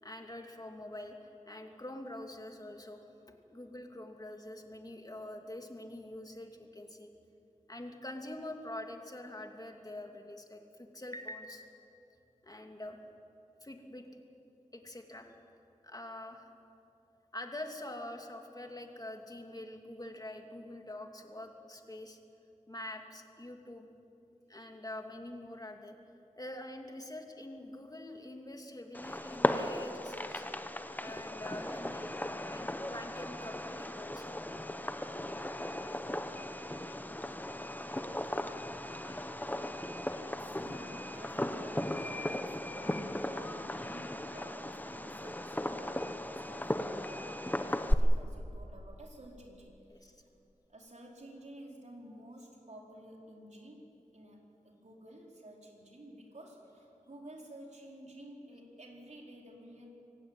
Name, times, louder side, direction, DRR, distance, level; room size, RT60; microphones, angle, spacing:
voice 1, 0.0-3.0 3.5-7.1 7.7-11.8 12.4-13.0 13.6-14.1 14.7-15.2 15.8-16.5 17.3-22.2 22.7-23.9 24.5-25.9 26.4-30.5 31.0-32.2 32.5-34.4 38.3-38.4 49.9-50.2, left 1 dB, 30° left, 3 dB, 2.6 m, -45 dB
Fireworks, 28.9-47.9, left 1 dB, 15° left, 1.0 m, -36 dB
voice 2, 35.7-36.0 38.4-39.3 40.3-50.3 50.7-53.8 54.1-59.9, right 1 dB, 60° right, -1 dB, 4.7 m, -52 dB
25.5 x 16.0 x 9.1 m, 2.8 s
wide cardioid pair, 60°, 14 cm